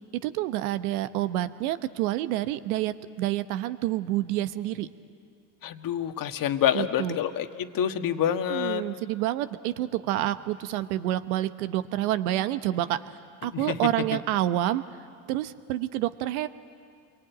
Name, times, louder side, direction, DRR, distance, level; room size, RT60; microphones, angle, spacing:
voice 1, 0.2-4.9 6.7-7.2 8.3-14.8 15.3-16.5, right 14 dB, 80° right, 12 dB, 1.1 m, -28 dB
voice 2, 5.6-8.9 13.4-13.8, left 10 dB, 50° left, 7 dB, 1.6 m, -27 dB
28.0 x 23.0 x 9.2 m, 2.3 s
hypercardioid pair, 75°, 43 cm